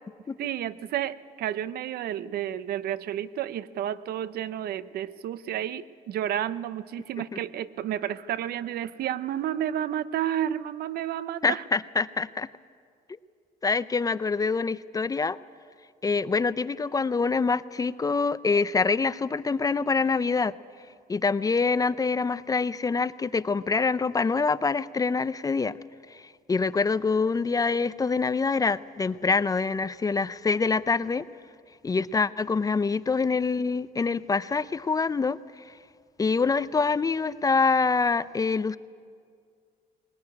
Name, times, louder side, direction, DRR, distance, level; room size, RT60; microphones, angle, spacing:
voice 1, 0.4-11.6, right 11 dB, 65° right, 16 dB, 0.7 m, -31 dB
voice 2, 11.4-12.5 13.6-15.4 16.0-20.5 21.1-25.7 26.5-31.2 31.8-35.4 36.2-38.8, left 4 dB, 20° left, 16 dB, 0.5 m, -25 dB
20.5 x 19.0 x 9.7 m, 2.1 s
cardioid pair, 110°, 17 cm